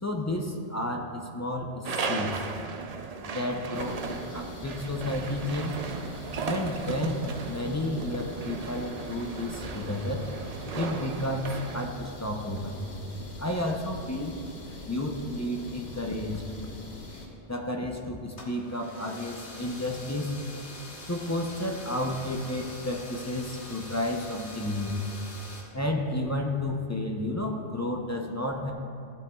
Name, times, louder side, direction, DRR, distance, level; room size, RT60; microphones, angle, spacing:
voice 1, 0.0-2.4 3.3-5.8 6.4-10.2 10.7-12.9 13.4-14.4 14.9-16.4 17.5-20.4 21.1-25.0 25.7-28.7, left 1 dB, 20° left, 1 dB, 0.5 m, -31 dB
sound 1, 1.8-11.9, right 4 dB, 55° right, 0.4 m, -36 dB
sound 2, 3.7-17.3, left 2 dB, 45° left, 1.3 m, -43 dB
sound 3, 18.3-25.6, left 2 dB, 65° left, 1.5 m, -44 dB
14.5 x 9.0 x 2.3 m, 2.4 s
omnidirectional pair, 1.2 m